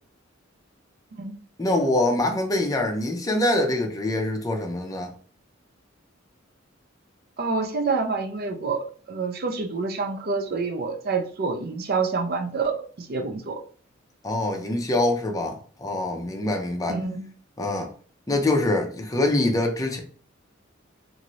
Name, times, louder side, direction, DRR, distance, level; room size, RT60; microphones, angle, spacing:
voice 1, 1.6-5.1 14.2-17.0 17.6-17.9 18.3-20.0, left 1 dB, 15° left, 0.6 m, -24 dB
voice 2, 7.4-13.6 16.9-17.3, right 4 dB, 50° right, 0.5 m, -27 dB
2.7 x 2.6 x 3.0 m
head